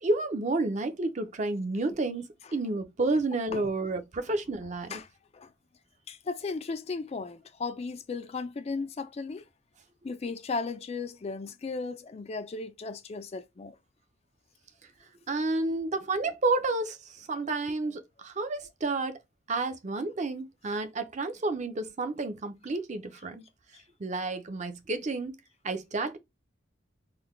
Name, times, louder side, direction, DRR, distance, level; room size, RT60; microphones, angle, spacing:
voice 1, 0.0-2.2 2.5-4.9 15.3-19.2 19.5-23.4 24.0-25.3 25.6-26.2, right 3 dB, 40° right, 0.6 m, -30 dB
voice 2, 6.1-9.4 10.0-13.8 23.7-23.8, left 4 dB, 35° left, 0.3 m, -36 dB
3.8 x 2.2 x 3.2 m
head